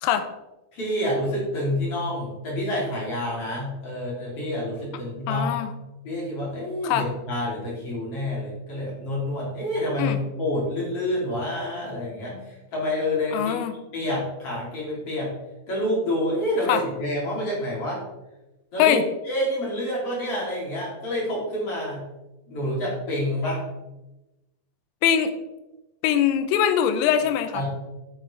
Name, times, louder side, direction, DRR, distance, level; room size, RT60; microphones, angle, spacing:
voice 1, 0.7-5.5 6.0-13.5 13.9-15.3 15.7-18.0 18.7-22.1 22.5-23.6 27.5-27.7, left 1 dB, 35° left, -6 dB, 3.5 m, -28 dB
voice 2, 5.3-5.7 6.8-7.1 10.0-10.2 13.3-13.7 16.7-16.8 18.8-19.0 25.0-25.3 26.0-27.7, left 9 dB, 85° left, 9 dB, 3.4 m, -22 dB
9.6 x 8.5 x 3.4 m, 1.0 s
omnidirectional pair, 5.8 m